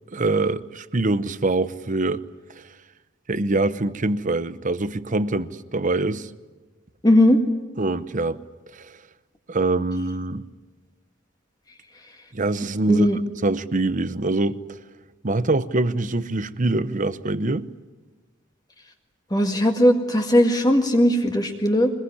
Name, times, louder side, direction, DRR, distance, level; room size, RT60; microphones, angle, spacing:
voice 1, 0.1-2.2 2.6-2.7 3.3-6.3 7.8-8.4 8.7-9.0 9.5-10.4 12.3-13.1 13.4-14.8 15.2-17.7, right 2 dB, 40° right, 0.9 m, -24 dB
voice 2, 7.0-7.4 12.9-13.2 19.3-21.9, equal, 20° left, 1.8 m, -18 dB
24.0 x 21.0 x 9.9 m
head